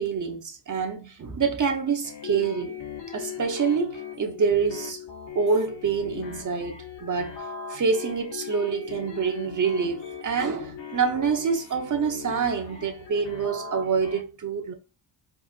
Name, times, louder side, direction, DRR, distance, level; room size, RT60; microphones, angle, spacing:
voice 1, 0.0-2.7 3.1-5.0 5.3-7.4 7.7-14.7, right 5 dB, 40° right, 1.2 m, -26 dB
sound 1, 2.0-14.2, left 7 dB, 65° left, 1.6 m, -39 dB
5.1 x 3.6 x 2.6 m
cardioid pair, 120°, 47 cm